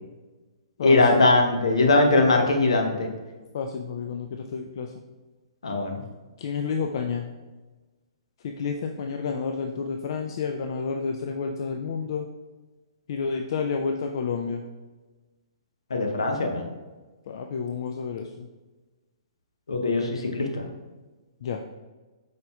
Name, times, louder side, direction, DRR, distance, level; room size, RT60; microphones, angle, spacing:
voice 1, 0.8-3.1 5.6-6.0 15.9-16.7 19.7-20.6, left 2 dB, 80° left, 3 dB, 0.8 m, -21 dB
voice 2, 3.5-4.9 6.4-7.3 8.4-12.2 13.1-14.6 17.3-18.3 21.4-21.6, left 5 dB, 55° left, 3 dB, 0.3 m, -30 dB
5.0 x 4.1 x 2.3 m, 1.2 s
hypercardioid pair, 125°, 3 cm